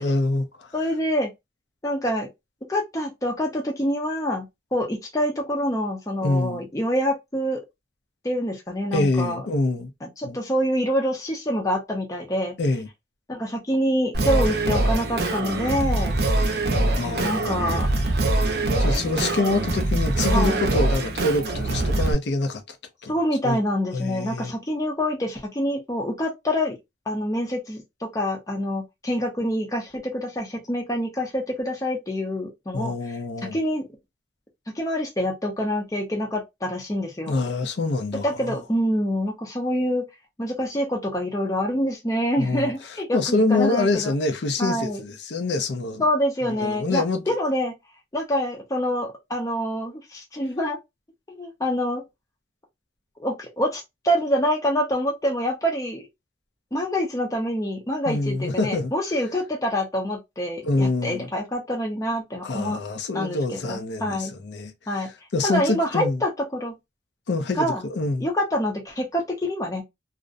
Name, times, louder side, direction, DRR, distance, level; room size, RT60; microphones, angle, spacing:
voice 1, 0.0-0.7 6.2-6.6 8.9-9.9 10.2-10.4 12.6-12.9 16.9-17.6 18.8-22.8 23.0-23.1 23.4-23.6 23.9-24.5 32.7-33.6 37.3-38.6 42.4-42.7 43.1-46.0 46.5-47.2 58.1-58.9 60.6-61.3 62.4-66.2 67.3-68.3, left 2 dB, 70° left, 0.5 m, -26 dB
voice 2, 0.7-1.3 1.8-2.3 2.7-4.5 4.7-7.6 8.2-9.4 10.0-12.5 13.3-16.2 16.8-16.9 17.2-17.9 20.3-20.6 23.1-26.8 27.1-33.2 33.5-33.9 34.7-37.3 38.2-40.1 40.4-44.1 44.6-45.0 46.0-47.7 48.1-50.8 51.3-52.0 53.2-56.0 56.7-62.8 63.1-64.3 64.9-65.1 65.4-66.8 67.6-67.8 68.2-69.8, equal, 20° left, 0.5 m, -26 dB
Singing, 14.1-22.1, right 2 dB, 55° right, 0.6 m, -23 dB
2.4 x 2.0 x 2.4 m
head